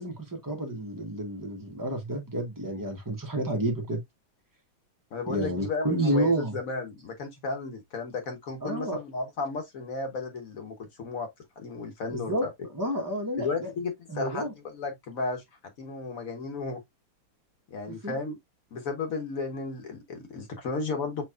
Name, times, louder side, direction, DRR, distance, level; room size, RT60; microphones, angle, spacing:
voice 1, 0.0-4.0 5.3-6.6 8.6-9.0 12.1-12.5 12.7-13.7 14.1-14.5 17.9-18.2, right 1 dB, 25° right, 0.4 m, -30 dB
voice 2, 5.1-11.3 11.6-12.5 13.4-15.4 15.8-16.8 17.7-18.4 18.7-21.2, left 3 dB, 50° left, 1.3 m, -34 dB
7.0 x 3.0 x 2.3 m
omnidirectional pair, 2.3 m